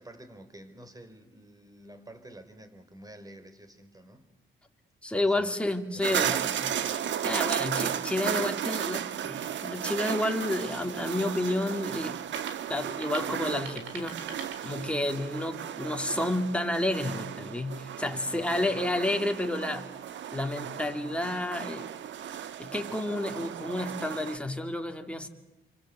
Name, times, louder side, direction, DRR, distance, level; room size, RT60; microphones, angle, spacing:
voice 1, 0.0-4.3 5.2-5.5 5.9-6.6 6.8-7.0 18.1-18.9, right 1 dB, 20° right, 9 dB, 4.1 m, -49 dB
voice 2, 5.0-6.7 7.2-12.2 12.7-19.9 20.3-21.9 22.6-25.3, left 1 dB, 5° left, 4 dB, 2.9 m, -30 dB
sound 1, 6.0-24.4, right 9 dB, 70° right, 1.3 m, -34 dB
sound 2, 9.9-15.2, right 6 dB, 85° right, 4.3 m, -47 dB
28.0 x 25.0 x 8.4 m, 0.96 s
cardioid pair, 90°, 20 cm